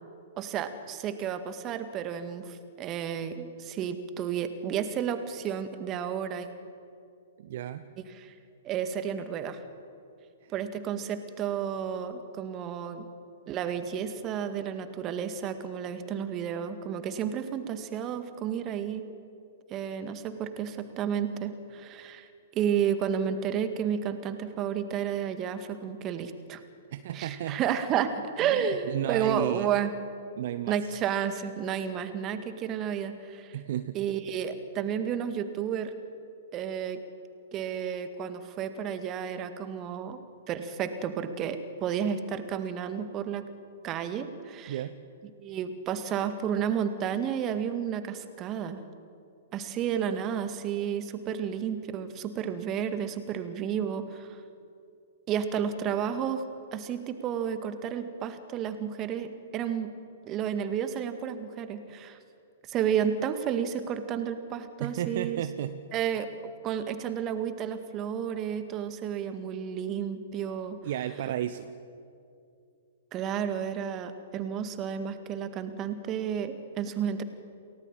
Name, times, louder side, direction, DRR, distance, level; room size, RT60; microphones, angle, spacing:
voice 1, 0.4-6.5 8.1-8.3 8.6-9.6 10.5-13.1 13.5-19.1 19.7-26.6 27.1-29.9 30.7-33.6 33.9-35.9 36.5-37.0 37.5-40.2 40.5-43.4 43.8-44.8 45.4-48.8 49.5-54.4 55.3-56.4 56.7-59.9 60.2-62.2 62.7-65.4 65.9-66.3 66.6-70.8 73.1-77.2, right 8 dB, 25° right, 9 dB, 1.9 m, -31 dB
voice 2, 7.4-7.8 10.4-10.5 26.9-27.6 28.4-29.7 30.4-30.8 33.5-34.0 44.7-44.9 64.8-65.7 70.8-71.7, right 11 dB, 50° right, 11 dB, 0.9 m, -33 dB
29.0 x 18.0 x 7.6 m, 2.5 s
figure-of-eight pair, 110°, 0 cm